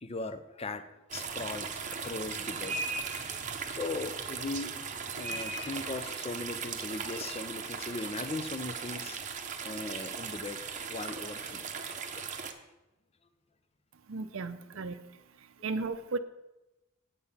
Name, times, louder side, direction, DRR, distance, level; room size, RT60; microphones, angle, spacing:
voice 1, 0.0-2.8 3.1-3.4 3.7-4.7 5.2-9.2 9.6-10.6 10.9-11.7 12.1-12.3, left 3 dB, 30° left, 11 dB, 0.5 m, -39 dB
sound 1, 1.1-12.5, right 5 dB, 35° right, 0.8 m, -38 dB
voice 2, 14.1-15.0 15.6-16.2, right 3 dB, 70° right, 12 dB, 0.6 m, -34 dB
8.4 x 6.9 x 5.5 m, 0.99 s
head